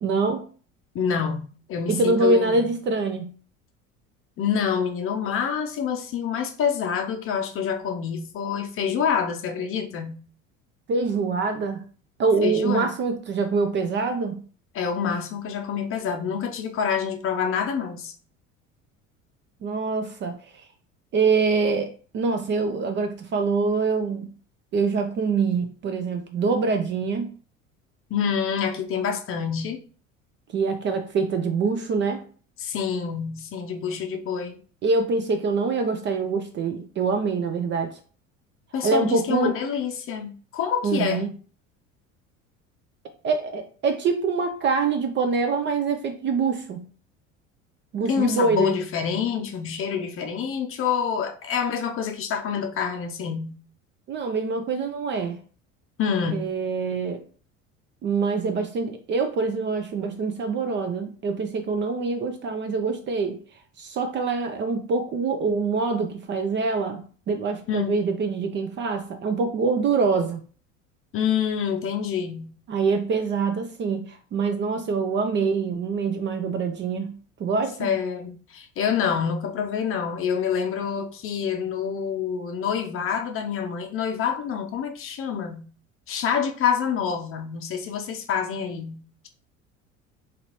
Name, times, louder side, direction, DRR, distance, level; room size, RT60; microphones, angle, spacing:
voice 1, 0.0-0.4 1.9-3.3 10.9-11.8 12.2-14.4 19.6-20.3 21.1-24.2 24.7-27.3 30.5-32.2 34.8-38.0 38.8-39.6 40.8-41.3 43.2-46.8 47.9-48.8 54.1-55.4 56.3-57.2 58.0-63.4 63.8-70.4 72.7-77.1 77.4-77.9, right 4 dB, 30° right, 0.5 m, -25 dB
voice 2, 0.9-2.7 4.4-10.2 12.4-12.9 14.7-18.1 28.1-29.8 32.6-34.6 38.7-41.3 48.1-53.6 56.0-56.5 67.7-68.0 71.1-72.5 77.8-85.6 86.1-89.3, left 7 dB, 35° left, 0.6 m, -27 dB
3.8 x 3.0 x 3.0 m
figure-of-eight pair, 65°, 40 cm